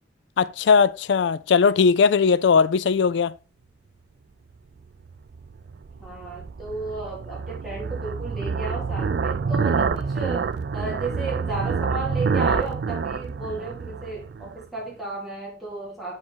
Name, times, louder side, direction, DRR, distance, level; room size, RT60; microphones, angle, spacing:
voice 1, 0.4-3.3, left 5 dB, 70° left, 0.4 m, -19 dB
sound 1, 5.1-14.6, right 5 dB, 60° right, 0.3 m, -27 dB
voice 2, 6.0-16.2, right 3 dB, ahead, 2.7 m, -33 dB
7.5 x 4.3 x 4.5 m
head